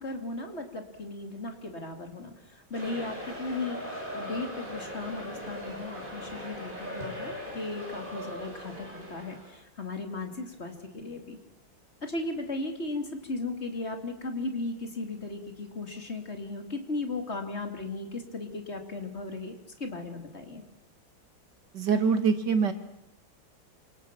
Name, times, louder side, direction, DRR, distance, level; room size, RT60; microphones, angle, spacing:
voice 1, 0.0-3.8 4.1-11.4 12.0-20.6, left 2 dB, 30° left, 5 dB, 3.0 m, -36 dB
sound 1, 2.7-9.5, equal, 25° right, 6.2 m, -39 dB
voice 2, 21.7-22.7, right 5 dB, 60° right, 8 dB, 2.3 m, -24 dB
27.5 x 25.5 x 6.1 m, 0.81 s
omnidirectional pair, 2.2 m